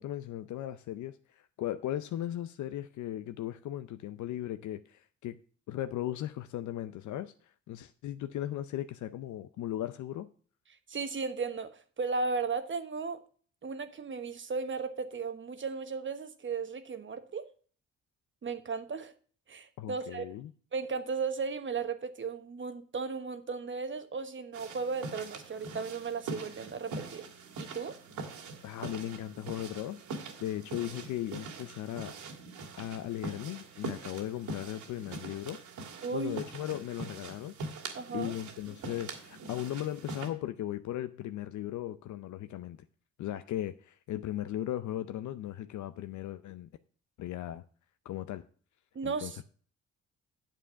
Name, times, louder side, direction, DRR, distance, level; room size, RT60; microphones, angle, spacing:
voice 1, 0.0-5.4 5.7-10.3 19.8-20.5 28.6-32.1 32.8-35.6 36.1-37.5 38.1-42.9 43.2-46.7 47.2-47.6 48.0-48.4 49.0-49.4, left 12 dB, 75° left, 0.6 m, -37 dB
voice 2, 10.9-13.2 13.6-17.5 18.4-19.1 19.5-20.3 20.7-27.3 27.6-28.0 36.0-36.4 37.9-38.3 48.9-49.4, right 4 dB, 40° right, 1.2 m, -35 dB
sound 1, 24.5-40.3, right 3 dB, 80° right, 2.4 m, -43 dB
9.0 x 7.6 x 5.7 m
cardioid pair, 90°, 30 cm